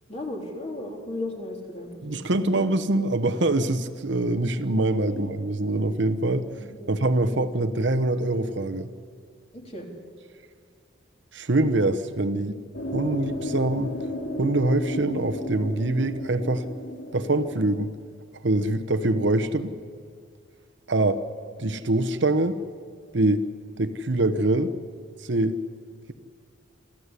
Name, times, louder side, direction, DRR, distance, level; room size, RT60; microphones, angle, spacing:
voice 1, 0.1-2.6 5.1-5.2 6.5-7.0 7.2-7.5 9.5-9.9, left 1 dB, 30° left, 0 dB, 3.6 m, -36 dB
voice 2, 2.0-6.5 6.9-8.9 11.3-12.6 12.9-13.9 14.4-16.6 17.1-17.9 18.4-19.8 20.9-21.2 21.6-22.6 23.1-23.5 23.8-24.7 25.2-25.6, right 2 dB, 65° right, 10 dB, 0.9 m, -24 dB
sound 1, 12.7-17.8, left 1 dB, 75° left, 3.2 m, -33 dB
27.5 x 14.5 x 8.3 m, 2.2 s
head